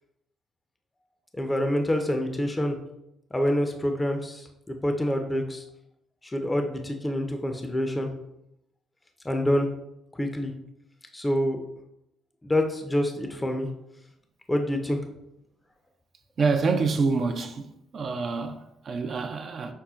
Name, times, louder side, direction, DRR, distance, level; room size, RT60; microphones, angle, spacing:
voice 1, 1.4-2.8 3.3-5.6 6.2-8.1 9.2-9.7 10.1-10.5 11.1-11.6 12.4-13.7 14.5-15.0, left 1 dB, 15° left, 0.5 m, -26 dB
voice 2, 16.4-17.6 17.9-19.7, right 4 dB, 50° right, 0.4 m, -26 dB
5.5 x 2.1 x 2.4 m
supercardioid pair, 70°, 0 cm